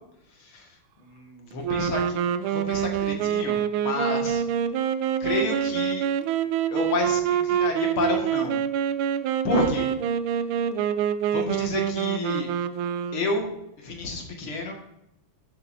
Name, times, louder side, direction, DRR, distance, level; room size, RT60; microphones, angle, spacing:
voice 1, 0.4-4.4 5.2-6.0 6.7-8.6 9.4-9.9 11.3-12.5 13.1-13.5 13.8-14.7, left 2 dB, 70° left, 1 dB, 2.7 m, -30 dB
sound 1, 1.6-13.5, right 9 dB, 75° right, 1.4 m, -26 dB
14.0 x 7.9 x 2.7 m, 0.83 s
omnidirectional pair, 2.4 m